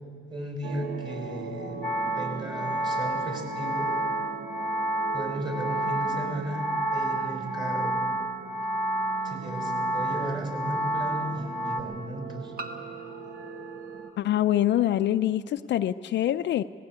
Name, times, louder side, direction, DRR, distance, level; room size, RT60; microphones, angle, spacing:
voice 1, 0.3-1.8 2.1-3.9 5.1-8.0 9.2-12.5, right 1 dB, 25° right, 1 dB, 5.4 m, -35 dB
sound 1, 0.6-14.1, right 5 dB, 65° right, 1.2 m, -39 dB
sound 2, 1.8-11.8, right 1 dB, 5° left, 1.7 m, -30 dB
sound 3, 8.6-8.7 10.4-10.5 12.6-15.1, right 1 dB, 50° right, 1.5 m, -45 dB
voice 2, 14.2-16.6, left 12 dB, 65° left, 11 dB, 0.5 m, -25 dB
19.0 x 17.0 x 8.2 m, 2.5 s
cardioid pair, 90°, 20 cm